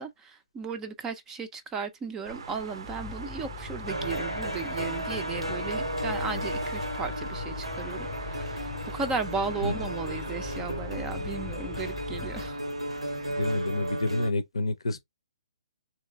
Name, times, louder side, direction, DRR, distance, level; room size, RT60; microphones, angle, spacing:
voice 1, 0.0-12.6, right 5 dB, 15° right, 0.4 m, -35 dB
sound 1, 2.2-14.0, right 4 dB, 60° right, 0.6 m, -43 dB
sound 2, 2.8-12.5, left 8 dB, 15° left, 0.8 m, -42 dB
sound 3, 3.9-14.3, equal, 90° right, 0.9 m, -34 dB
voice 2, 13.3-15.0, left 2 dB, 70° left, 0.6 m, -29 dB
3.1 x 2.9 x 3.3 m
figure-of-eight pair, 130°, 3 cm